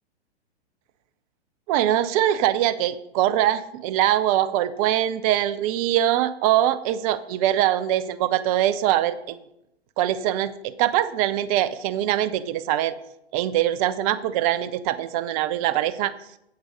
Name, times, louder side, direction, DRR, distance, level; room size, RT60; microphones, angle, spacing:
voice 1, 1.7-9.4 10.0-12.9 13.3-16.1, right 12 dB, 35° right, 15 dB, 0.6 m, -23 dB
8.1 x 7.7 x 5.3 m, 0.82 s
figure-of-eight pair, 110°, 33 cm